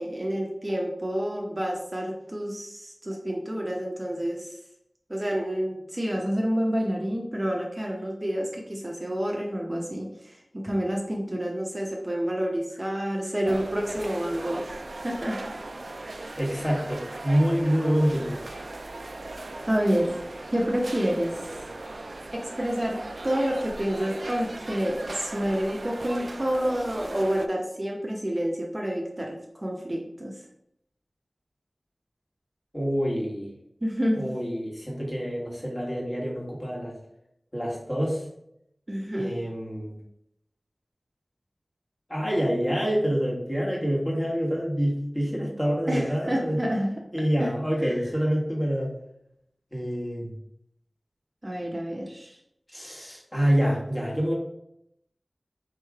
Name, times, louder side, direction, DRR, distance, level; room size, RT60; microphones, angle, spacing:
voice 1, 0.0-4.5 5.1-14.6 14.9-15.4 19.7-20.2 20.5-21.3 22.3-30.4 33.8-34.2 38.9-39.3 45.9-46.9 47.4-47.5 47.8-48.0 51.4-52.4, equal, 30° right, -1 dB, 0.7 m, -28 dB
sound 1, 13.5-27.5, right 2 dB, 65° right, 0.3 m, -38 dB
voice 2, 16.4-18.4 32.7-33.5 34.1-36.9 37.5-38.2 39.1-40.0 42.1-46.6 47.1-48.9 49.7-50.3 52.7-54.3, equal, 20° left, -4 dB, 1.5 m, -26 dB
3.7 x 3.1 x 4.7 m, 0.77 s
wide cardioid pair, 60°, 0 cm